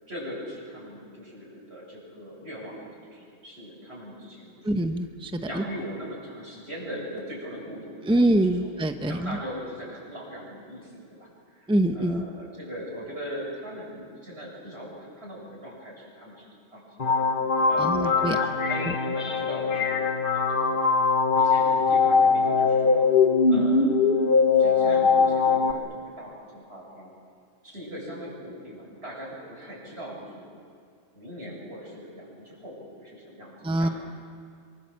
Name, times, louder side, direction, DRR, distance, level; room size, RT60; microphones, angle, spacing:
voice 1, 0.1-4.9 5.4-8.7 9.1-20.8 21.4-23.1 23.5-24.0 24.6-27.1 27.6-30.5 31.1-33.9, equal, 55° right, -3 dB, 7.8 m, -40 dB
voice 2, 4.6-5.6 8.1-9.4 11.7-12.2 17.8-18.5 18.8-18.9 33.6-33.9, right 1 dB, 5° right, 7 dB, 0.9 m, -24 dB
sound 1, 17.0-25.7, left 4 dB, 45° left, 1.5 m, -21 dB
26.0 x 24.0 x 7.7 m, 2.3 s
omnidirectional pair, 1.3 m